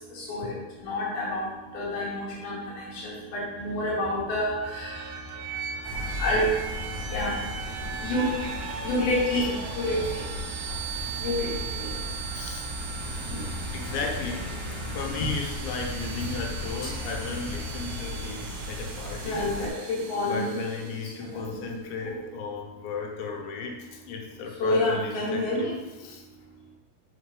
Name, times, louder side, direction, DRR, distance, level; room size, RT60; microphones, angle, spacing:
voice 1, 0.1-5.0 6.2-6.5 7.1-7.3 8.0-8.3 8.8-10.2 11.2-11.9 13.3-13.4 19.2-20.6 21.2-22.2 24.6-25.8, left 1 dB, 70° left, -5 dB, 3.0 m, -29 dB
sound 1, 3.5-17.9, left 3 dB, 50° right, 1.8 m, -43 dB
sound 2, 4.6-21.4, right 7 dB, 80° right, 2.4 m, -39 dB
sound 3, 5.8-19.7, left 1 dB, 30° right, 1.9 m, -37 dB
voice 2, 12.3-12.7 13.2-14.6 14.9-19.5 19.8-19.9 20.3-25.7 26.0-26.2, left 4 dB, 90° left, 1 dB, 3.1 m, -35 dB
6.4 x 3.7 x 4.8 m, 1.1 s
omnidirectional pair, 4.9 m